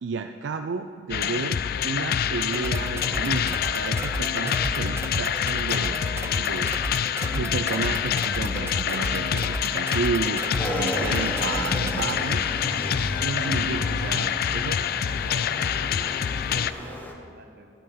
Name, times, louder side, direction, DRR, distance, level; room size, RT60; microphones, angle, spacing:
voice 1, 0.0-1.6 1.8-6.8 7.3-10.4 10.7-12.4 13.2-14.8, right 4 dB, 85° right, 6 dB, 0.4 m, -32 dB
sound 1, 1.1-16.7, left 8 dB, 55° left, 0.3 m, -26 dB
sound 2, 2.5-12.1, right 2 dB, 15° right, 0.4 m, -35 dB
voice 2, 6.1-6.6 15.0-17.7, right 2 dB, 60° right, 4 dB, 1.2 m, -45 dB
Motorcycle / Engine, 10.6-17.1, left 1 dB, 10° left, 1.0 m, -34 dB
12.5 x 5.7 x 7.0 m, 2.4 s
head